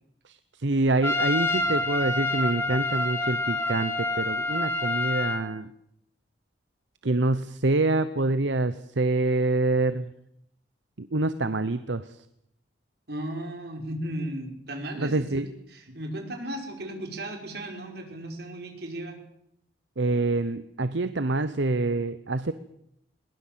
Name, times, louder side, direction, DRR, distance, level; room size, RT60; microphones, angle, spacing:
voice 1, 0.2-5.7 7.0-10.1 11.0-12.2 15.0-15.5 20.0-22.5, right 2 dB, 75° right, 13 dB, 0.9 m, -26 dB
Trumpet, 1.0-5.5, left 2 dB, 15° left, 2.1 m, -27 dB
voice 2, 13.1-15.4 15.7-19.2, right 1 dB, 55° right, 4 dB, 5.2 m, -35 dB
21.5 x 20.0 x 7.6 m, 0.74 s
head